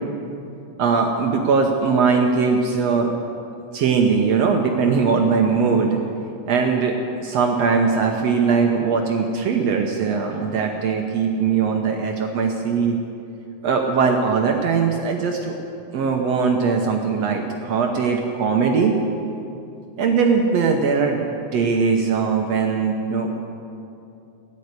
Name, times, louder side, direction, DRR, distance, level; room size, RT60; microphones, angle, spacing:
voice 1, 0.8-3.1 3.7-6.0 6.5-7.0 7.2-13.0 13.6-15.5 15.9-19.0 20.0-23.4, right 5 dB, 65° right, 2 dB, 1.9 m, -20 dB
14.5 x 9.8 x 9.6 m, 2.7 s
omnidirectional pair, 3.5 m